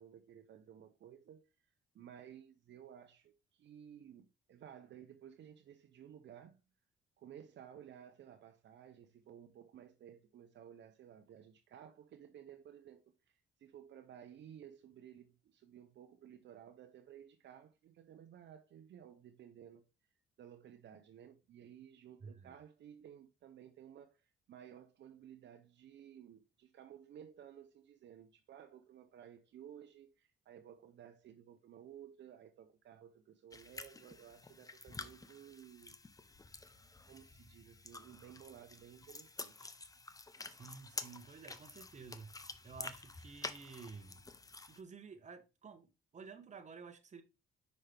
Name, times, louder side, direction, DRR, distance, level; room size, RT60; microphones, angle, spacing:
voice 1, 0.0-1.5 1.9-6.6 7.2-19.9 20.4-36.0 37.1-39.8, right 9 dB, 65° right, 0.7 m, -56 dB
voice 2, 22.2-22.6 40.6-42.4 42.6-44.2 44.7-47.2, right 5 dB, 35° right, 1.1 m, -52 dB
sound 1, 33.5-44.8, left 3 dB, 15° left, 0.6 m, -49 dB
5.6 x 5.3 x 3.4 m
cardioid pair, 90°, 20 cm